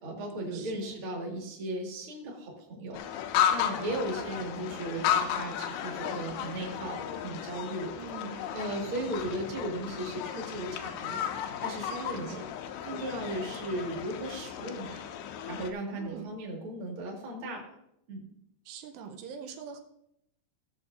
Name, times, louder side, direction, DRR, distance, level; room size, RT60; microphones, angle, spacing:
voice 1, 0.0-3.0 3.5-7.9 8.3-11.2 11.6-12.4 12.8-15.1 15.4-17.6 18.1-18.3, right 1 dB, 40° right, -1 dB, 2.2 m, -36 dB
voice 2, 0.5-1.0 3.9-4.3 8.0-8.4 12.2-12.5 16.0-16.3 18.7-19.8, right 6 dB, 90° right, 4 dB, 3.0 m, -43 dB
sound 1, 2.9-15.7, left 9 dB, 85° left, 2.7 m, -34 dB
17.5 x 7.0 x 2.7 m, 0.78 s
omnidirectional pair, 4.8 m